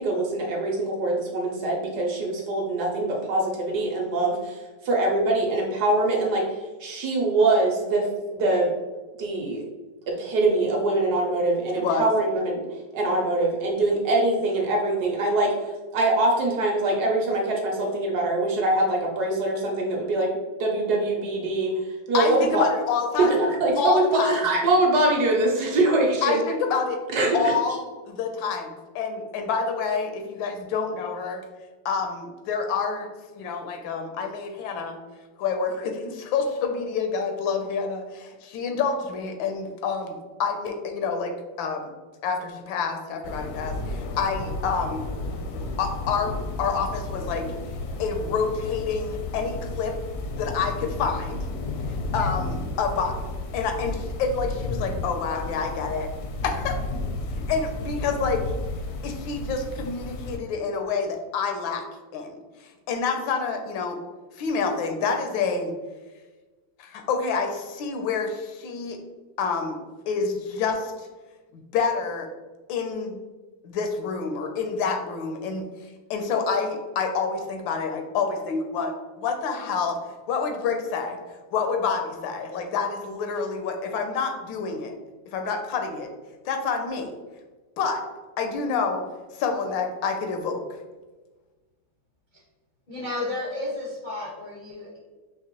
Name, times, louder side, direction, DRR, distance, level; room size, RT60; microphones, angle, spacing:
voice 1, 0.0-6.4 6.8-8.1 8.3-8.7 9.2-9.6 10.2-12.7 12.9-20.3 20.6-21.7 22.1-22.6 23.2-26.4 27.1-27.5, right 2 dB, 65° right, 0 dB, 1.1 m, -23 dB
voice 2, 11.7-12.1 22.1-23.3 23.8-24.4 26.2-27.0 27.3-27.8 28.0-31.4 31.8-33.1 33.4-35.0 35.4-41.8 42.2-45.0 45.5-47.5 48.0-50.0 50.4-51.4 52.1-53.2 53.5-56.1 56.4-56.8 57.5-58.4 59.0-61.8 62.1-62.4 62.9-64.0 64.4-65.7 66.8-69.0 69.4-69.8 70.1-70.9 71.7-72.3 72.7-73.2 73.6-75.7 76.1-80.0 80.3-81.2 81.5-84.9 85.3-86.1 86.5-87.1 87.8-88.0 88.4-89.1 89.3-90.8, left 5 dB, 90° left, 5 dB, 1.4 m, -28 dB
sound 1, 43.2-60.4, left 2 dB, 75° left, 0.9 m, -32 dB
voice 3, 92.9-95.0, left 2 dB, 55° left, -6 dB, 0.5 m, -32 dB
4.7 x 2.9 x 2.9 m, 1.3 s
omnidirectional pair, 2.0 m